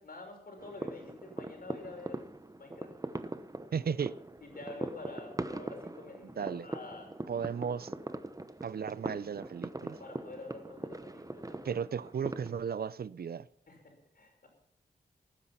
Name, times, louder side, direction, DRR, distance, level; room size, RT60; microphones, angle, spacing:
voice 1, 0.0-2.2 2.6-2.9 3.7-4.1 4.4-7.1 10.0-11.8 13.7-14.5, left 2 dB, 60° left, 5.7 m, -48 dB
sound 1, 0.6-12.6, right 2 dB, 20° right, 0.9 m, -42 dB
voice 2, 3.7-4.1 6.4-6.7 7.3-7.9 8.6-10.0 11.6-13.5, right 7 dB, 65° right, 0.5 m, -35 dB
18.5 x 10.0 x 5.7 m
wide cardioid pair, 80°, 18 cm